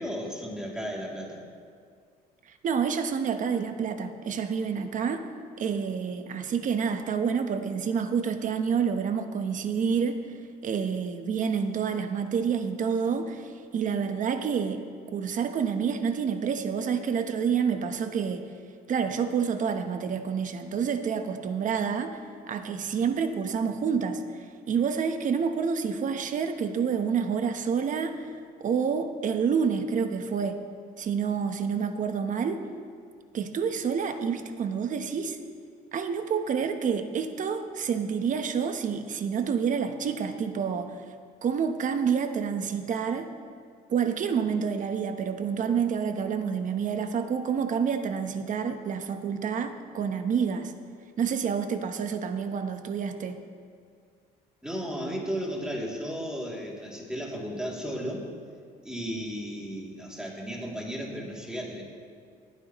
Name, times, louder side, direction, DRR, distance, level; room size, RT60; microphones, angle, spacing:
voice 1, 0.0-1.4 54.6-58.2 58.8-61.8, equal, 5° right, -3 dB, 2.8 m, -34 dB
voice 2, 2.6-5.2 5.6-10.2 10.6-14.8 15.1-18.4 18.9-22.2 22.5-24.2 24.7-28.3 28.6-30.6 31.0-32.6 33.3-35.4 35.9-40.9 41.4-43.3 43.9-50.7 51.2-53.4, right 6 dB, 50° right, 7 dB, 1.0 m, -28 dB
27.0 x 9.4 x 3.1 m, 2.1 s
cardioid pair, 110°, 17 cm